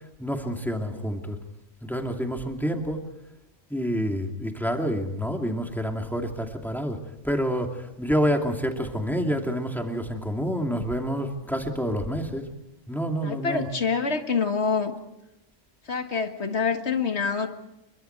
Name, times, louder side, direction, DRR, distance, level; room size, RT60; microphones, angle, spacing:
voice 1, 0.2-1.4 1.8-3.1 3.7-7.0 7.2-12.5 12.9-13.7, equal, ahead, 2 dB, 2.5 m, -28 dB
voice 2, 13.2-14.9 15.9-17.5, left 5 dB, 60° left, 7 dB, 1.9 m, -26 dB
28.5 x 23.5 x 4.6 m, 0.89 s
omnidirectional pair, 1.3 m